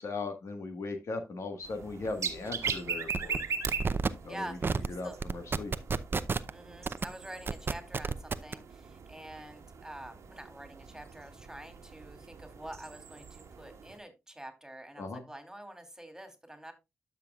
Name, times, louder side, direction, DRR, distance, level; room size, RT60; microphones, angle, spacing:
voice 1, 0.0-3.4 4.2-4.6 4.9-5.7 15.0-15.2, left 3 dB, 70° left, 6 dB, 1.5 m, -38 dB
sound 1, 1.6-14.0, right 5 dB, 70° right, 1.3 m, -41 dB
sound 2, 2.0-2.2 2.5-2.7 3.1-3.4 3.7-4.1 4.6-4.9 5.2-6.5 6.9-7.1 7.5-8.5, right 4 dB, 45° right, 0.6 m, -30 dB
voice 2, 4.3-5.2 6.5-16.7, right 1 dB, 10° right, 6 dB, 2.5 m, -47 dB
12.0 x 5.9 x 2.4 m, 0.22 s
cardioid pair, 50°, 5 cm